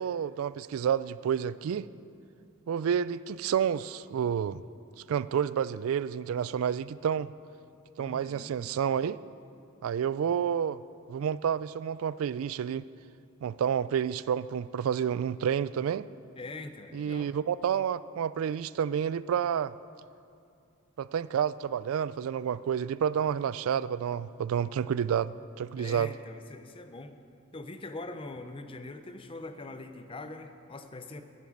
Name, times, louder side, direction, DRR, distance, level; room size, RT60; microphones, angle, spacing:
voice 1, 0.0-1.9 2.7-4.6 5.1-7.3 8.0-9.2 9.8-10.8 11.1-12.9 13.4-16.1 16.9-19.7 21.0-26.1, right 8 dB, 80° right, 17 dB, 0.3 m, -29 dB
voice 2, 8.0-8.5 16.4-17.3 25.8-27.1 27.5-31.2, left 2 dB, 25° left, 8 dB, 0.6 m, -42 dB
11.0 x 7.4 x 8.6 m, 2.5 s
head